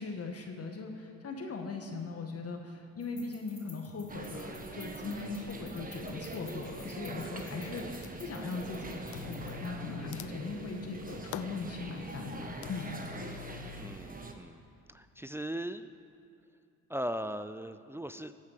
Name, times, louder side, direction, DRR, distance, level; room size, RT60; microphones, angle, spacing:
voice 1, 0.0-12.9, left 4 dB, 45° left, 2 dB, 1.7 m, -39 dB
sound 1, 3.0-9.7, left 3 dB, 10° left, 4.0 m, -55 dB
sound 2, 4.1-14.3, right 2 dB, 25° right, 1.6 m, -43 dB
sound 3, 8.0-8.4 9.1-13.9, left 14 dB, 65° left, 0.5 m, -46 dB
voice 2, 13.8-14.6 14.9-15.9 16.9-18.3, equal, 10° right, 11 dB, 0.5 m, -38 dB
15.5 x 8.4 x 6.6 m, 2.7 s
supercardioid pair, 70°, 32 cm